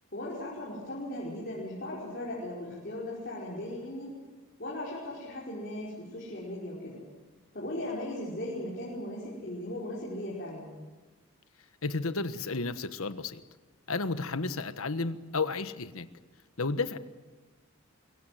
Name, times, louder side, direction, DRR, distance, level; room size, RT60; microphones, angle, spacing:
voice 1, 0.1-4.2 4.6-7.0 7.5-10.7, left 1 dB, 45° left, -5 dB, 5.4 m, -37 dB
voice 2, 11.8-13.4 13.9-16.1 16.6-17.0, left 3 dB, 70° left, 11 dB, 1.3 m, -32 dB
25.0 x 22.5 x 7.9 m, 1.3 s
head